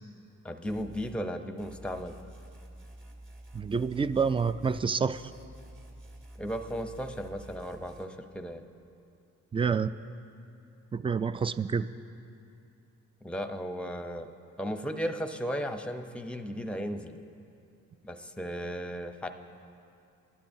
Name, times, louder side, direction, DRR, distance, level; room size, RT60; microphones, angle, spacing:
voice 1, 0.4-2.1 6.4-8.6 13.2-14.3 14.6-17.2 18.0-19.3, equal, 5° left, 6 dB, 0.8 m, -35 dB
sound 1, 0.7-1.2 1.6-4.9 5.1-8.0, right 1 dB, 40° right, 2.7 m, -49 dB
voice 2, 3.5-5.2 9.5-9.9 10.9-11.9, right 5 dB, 15° right, 14 dB, 0.3 m, -28 dB
20.0 x 12.0 x 2.7 m, 2.6 s
cardioid pair, 80°, 33 cm